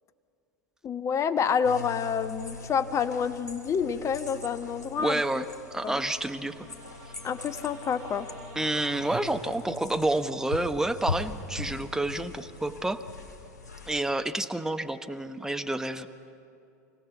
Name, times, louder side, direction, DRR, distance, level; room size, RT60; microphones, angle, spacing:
voice 1, 0.8-5.4 5.8-6.0 7.2-8.3, left 7 dB, 35° left, 11 dB, 1.1 m, -28 dB
sound 1, 1.6-14.0, left 3 dB, 90° left, 2.4 m, -41 dB
sound 2, 4.8-9.2, right 3 dB, 45° right, 5.6 m, -48 dB
voice 2, 5.0-5.4 5.7-6.5 8.6-13.0 13.9-16.1, right 2 dB, 5° right, 9 dB, 1.0 m, -29 dB
25.0 x 17.5 x 7.2 m, 2.7 s
hypercardioid pair, 85°, 9 cm